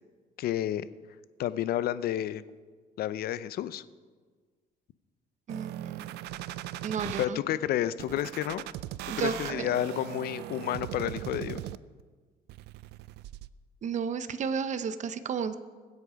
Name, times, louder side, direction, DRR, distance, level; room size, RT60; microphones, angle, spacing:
voice 1, 0.4-0.8 1.4-2.4 3.0-3.8 7.2-8.6 9.2-11.6, left 12 dB, 65° left, 15 dB, 0.6 m, -30 dB
voice 2, 5.5-6.1 6.8-7.4 9.1-9.5 13.8-15.5, right 6 dB, 45° right, 11 dB, 0.8 m, -32 dB
sound 1, 5.5-7.3 8.0-12.0 12.5-13.5, right 14 dB, 80° right, 0.4 m, -39 dB
21.0 x 8.2 x 5.1 m, 1.5 s
cardioid pair, 110°, 17 cm